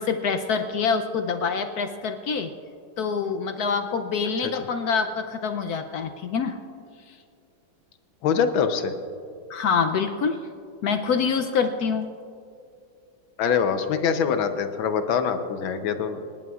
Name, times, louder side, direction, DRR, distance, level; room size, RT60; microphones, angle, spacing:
voice 1, 0.0-2.5 3.0-6.6 7.1-7.2 9.5-10.4 10.8-12.1, left 5 dB, 70° left, 7 dB, 0.9 m, -25 dB
voice 2, 8.2-8.9 13.4-16.2, left 6 dB, 85° left, 8 dB, 1.6 m, -24 dB
27.5 x 10.5 x 2.4 m, 2.4 s
omnidirectional pair, 2.1 m